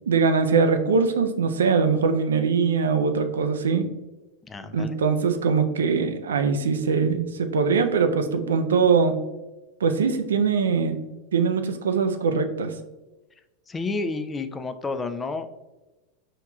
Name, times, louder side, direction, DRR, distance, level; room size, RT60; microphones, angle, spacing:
voice 1, 0.0-3.9 4.7-9.2 9.8-11.0 11.3-12.7, right 5 dB, 90° right, 7 dB, 0.4 m, -22 dB
voice 2, 4.4-5.0 13.7-15.5, left 3 dB, 20° left, 9 dB, 0.3 m, -30 dB
4.5 x 2.9 x 2.3 m, 1.1 s
hypercardioid pair, 105°, 0 cm